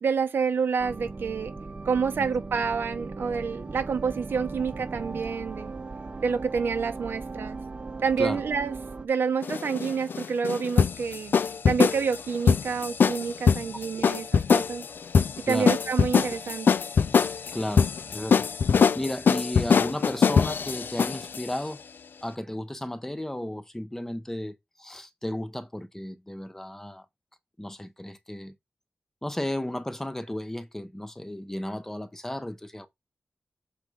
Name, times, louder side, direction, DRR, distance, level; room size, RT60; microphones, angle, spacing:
voice 1, 0.0-1.5 1.8-5.7 6.2-7.6 8.0-11.3 11.7-14.8 15.5-16.7, right 5 dB, 85° right, 1.1 m, -28 dB
sound 1, 0.8-9.1, right 3 dB, 35° right, 0.9 m, -38 dB
sound 2, 9.4-21.4, left 6 dB, 70° left, 0.4 m, -23 dB
voice 2, 17.5-18.5 18.7-21.8 22.2-27.0 27.6-28.5 29.2-32.9, left 1 dB, 10° left, 0.8 m, -34 dB
6.6 x 3.8 x 4.8 m
wide cardioid pair, 130°, 4 cm